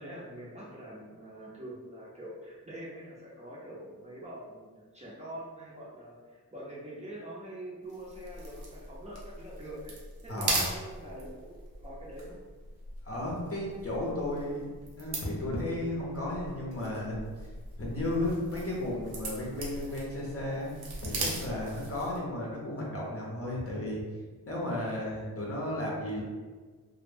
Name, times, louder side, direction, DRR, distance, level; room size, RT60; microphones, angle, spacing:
voice 1, 0.0-9.9 10.2-11.5 11.8-12.4, right 1 dB, 20° right, -7 dB, 0.6 m, -44 dB
sound 1, 7.9-22.3, right 2 dB, 80° right, 0.7 m, -40 dB
voice 2, 10.3-10.7 13.0-17.5 17.8-20.7 21.0-24.0 24.4-26.2, left 1 dB, 40° left, -4 dB, 0.7 m, -34 dB
2.1 x 2.1 x 3.2 m, 1.4 s
wide cardioid pair, 75°, 37 cm